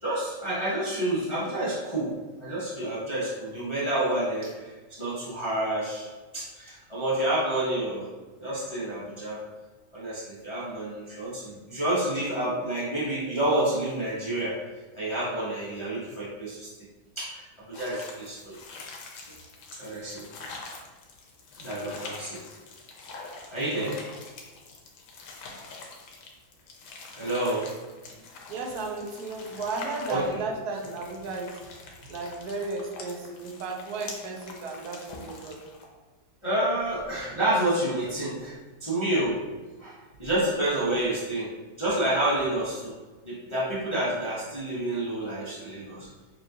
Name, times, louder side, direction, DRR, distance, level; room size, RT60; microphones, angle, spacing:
voice 1, 0.0-8.1 8.4-9.4 9.9-14.5 15.0-16.7 17.2-18.6 19.7-20.2 21.6-22.4 23.5-24.0 27.1-27.7 30.1-30.2 36.4-38.5 38.8-39.4 39.8-41.5 41.8-42.9 43.2-46.1, right 1 dB, 30° left, -8 dB, 0.6 m, -29 dB
sound 1, 17.7-35.8, left 3 dB, 85° left, 1.3 m, -45 dB
voice 2, 28.5-31.5 32.1-35.6, right 3 dB, 70° right, 0 dB, 1.2 m, -34 dB
6.0 x 2.4 x 2.7 m, 1.3 s
omnidirectional pair, 1.8 m